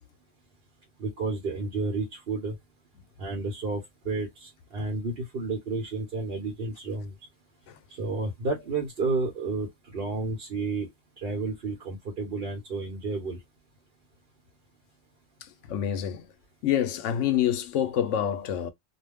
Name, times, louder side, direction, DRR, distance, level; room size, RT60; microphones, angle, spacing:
voice 1, 1.0-2.6 3.2-7.1 8.0-10.9 11.2-13.4, right 3 dB, 55° right, 1.0 m, -31 dB
voice 2, 15.7-16.3 16.6-18.7, left 10 dB, 75° left, 0.9 m, -26 dB
2.5 x 2.2 x 3.3 m
omnidirectional pair, 1.3 m